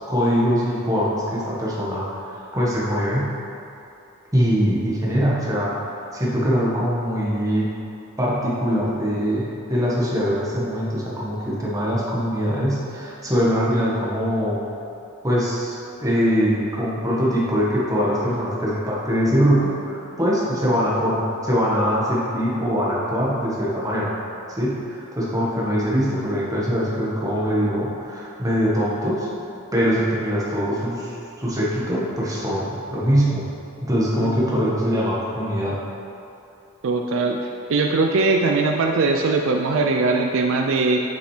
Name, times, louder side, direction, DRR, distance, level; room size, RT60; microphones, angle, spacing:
voice 1, 0.1-2.0 2.5-3.3 4.3-5.7 6.1-7.7 8.2-14.6 15.2-24.1 24.5-29.3 29.7-31.1 31.4-33.4 33.8-35.8, equal, 15° right, -6 dB, 1.4 m, -22 dB
voice 2, 34.2-34.6 36.8-37.4 37.7-41.0, right 3 dB, 65° right, 2 dB, 0.4 m, -21 dB
8.3 x 6.4 x 3.3 m, 2.7 s
head